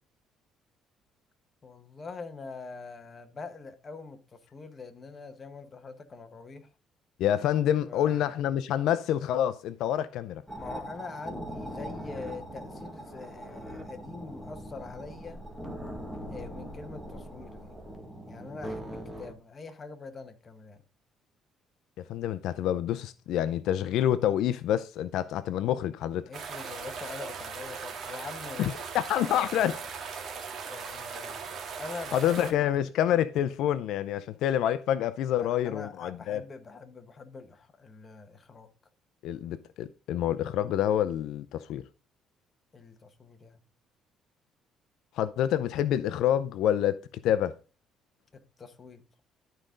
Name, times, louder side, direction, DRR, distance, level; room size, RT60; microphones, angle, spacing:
voice 1, 1.6-6.7 7.9-8.2 10.5-15.4 16.3-17.8 18.3-20.8 26.3-28.8 30.7-32.7 35.3-38.7 42.7-43.6 48.3-49.0, left 4 dB, 25° left, 1.2 m, -44 dB
voice 2, 7.2-10.4 22.1-26.3 28.6-29.8 32.1-36.4 39.2-41.8 45.1-47.5, left 11 dB, 70° left, 0.5 m, -27 dB
sound 1, 10.5-19.3, equal, 5° right, 1.8 m, -41 dB
sound 2, 26.3-32.5, right 6 dB, 45° right, 1.8 m, -39 dB
12.0 x 5.1 x 3.8 m
cardioid pair, 150°, 0 cm